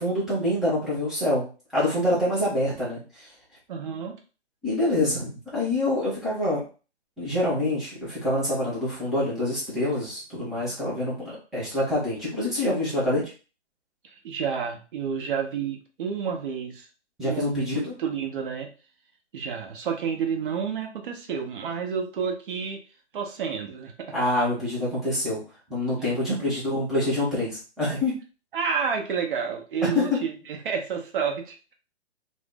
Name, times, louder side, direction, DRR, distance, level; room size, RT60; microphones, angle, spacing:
voice 1, 0.0-1.4 1.7-3.3 4.6-6.6 7.2-13.3 17.2-17.9 24.1-25.4 25.7-28.1 29.9-30.2, left 1 dB, ahead, -9 dB, 0.4 m, -26 dB
voice 2, 3.7-4.2 14.0-16.9 17.2-17.7 18.0-18.7 19.3-22.8 23.1-23.9 26.1-26.5 28.5-31.7, right 6 dB, 50° right, 3 dB, 0.7 m, -30 dB
2.6 x 2.0 x 3.5 m, 0.35 s
hypercardioid pair, 135°, 34 cm